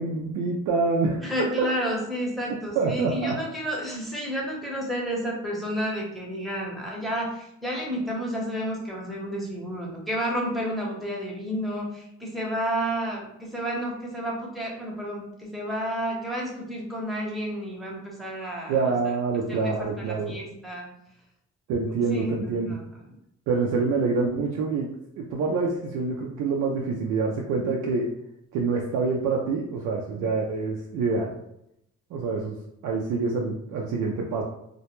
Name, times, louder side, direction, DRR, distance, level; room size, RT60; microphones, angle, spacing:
voice 1, 0.0-1.3 2.8-3.4 18.7-20.3 21.7-22.7 23.5-24.9 25.2-28.1 28.5-31.3 32.1-32.6 32.8-34.4, right 4 dB, 80° right, -2 dB, 0.5 m, -26 dB
voice 2, 1.2-18.8 19.3-20.9 21.9-22.8, equal, ahead, -3 dB, 0.8 m, -31 dB
2.2 x 2.1 x 2.9 m, 0.79 s
cardioid pair, 90°, 30 cm